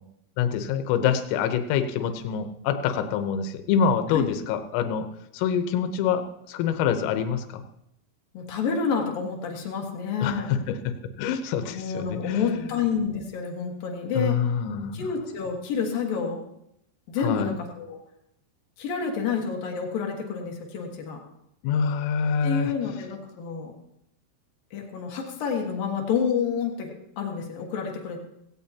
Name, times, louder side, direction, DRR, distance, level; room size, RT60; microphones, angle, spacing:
voice 1, 0.4-5.1 5.3-7.6 10.2-12.7 14.1-15.1 17.2-17.6 21.6-22.7, left 7 dB, 80° left, 8 dB, 3.5 m, -26 dB
voice 2, 8.3-10.6 11.7-14.4 14.9-16.4 17.1-18.0 18.8-21.2 22.4-23.7 24.7-28.2, left 6 dB, 60° left, 0 dB, 2.6 m, -29 dB
17.0 x 16.5 x 2.9 m, 0.79 s
omnidirectional pair, 5.9 m